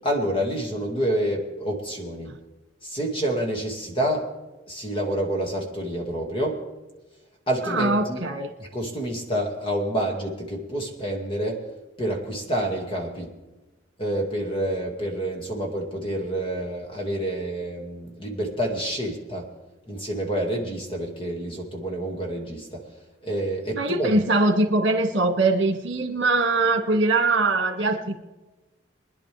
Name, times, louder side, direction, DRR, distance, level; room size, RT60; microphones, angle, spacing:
voice 1, 0.0-2.3 2.8-4.3 4.7-6.6 7.5-8.2 8.6-11.6 12.0-13.3 14.0-19.5 19.9-22.8 23.2-24.2, right 1 dB, 25° left, 1 dB, 2.1 m, -28 dB
voice 2, 7.6-8.5 23.8-28.2, right 2 dB, 60° right, 5 dB, 1.9 m, -22 dB
24.5 x 10.5 x 3.5 m, 1.1 s
head